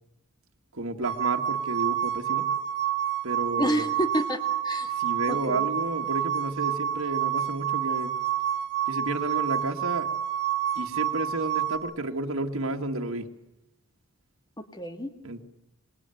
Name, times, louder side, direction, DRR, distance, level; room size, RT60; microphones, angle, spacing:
voice 1, 0.7-2.5 3.2-3.9 5.0-8.1 8.9-10.1 10.8-13.3 15.2-15.4, right 2 dB, 75° right, 4 dB, 1.8 m, -31 dB
sound 1, 1.0-11.8, right 10 dB, 40° left, 3.7 m, -28 dB
voice 2, 3.6-4.9 5.3-5.7 14.6-15.1, equal, 20° left, 8 dB, 1.9 m, -29 dB
26.0 x 20.0 x 9.1 m, 0.96 s
head